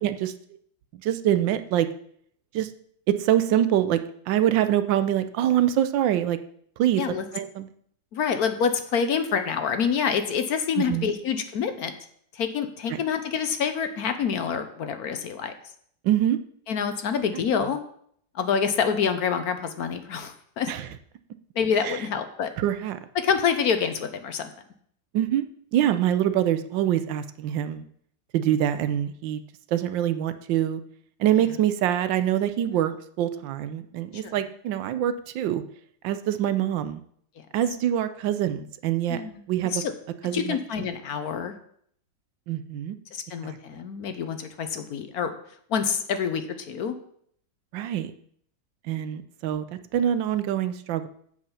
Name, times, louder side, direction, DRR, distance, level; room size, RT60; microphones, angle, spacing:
voice 1, 0.0-0.3 1.0-1.9 2.5-2.7 3.1-4.0 4.3-6.4 6.8-7.0 7.3-7.7 10.8-11.1 12.9-13.0 16.0-16.4 20.7-20.9 21.8-22.0 22.6-23.0 25.1-25.5 25.7-27.8 28.3-29.4 29.7-30.8 31.2-35.6 36.0-37.0 37.5-39.2 39.5-39.8 40.2-40.6 42.5-43.0 43.4-43.6 47.7-48.1 48.8-51.1, right 11 dB, 85° right, 11 dB, 1.4 m, -25 dB
voice 2, 8.1-11.9 12.3-15.5 16.7-17.8 18.3-20.7 21.6-22.5 23.1-24.5 31.4-31.5 32.7-32.8 34.2-34.4 39.1-39.4 39.7-39.8 40.3-41.5 43.1-45.3 45.7-46.9, left 6 dB, 60° left, 9 dB, 1.1 m, -27 dB
7.8 x 7.5 x 5.6 m, 0.64 s
omnidirectional pair, 2.0 m